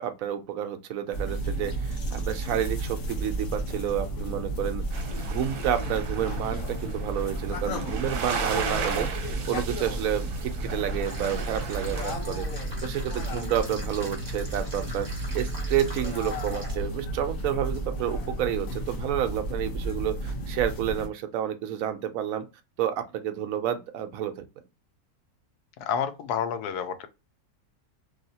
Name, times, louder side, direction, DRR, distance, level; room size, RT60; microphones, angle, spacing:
voice 1, 0.0-22.4 22.8-24.3, right 10 dB, 70° right, 0.9 m, -30 dB
sound 1, 1.1-21.1, right 1 dB, 65° left, 1.4 m, -32 dB
sound 2, 4.9-12.1, right 6 dB, 85° right, 1.2 m, -36 dB
sound 3, 11.0-16.8, equal, 15° right, 1.1 m, -43 dB
voice 2, 25.8-27.1, left 8 dB, 85° left, 1.1 m, -29 dB
3.2 x 2.7 x 2.7 m
omnidirectional pair, 1.6 m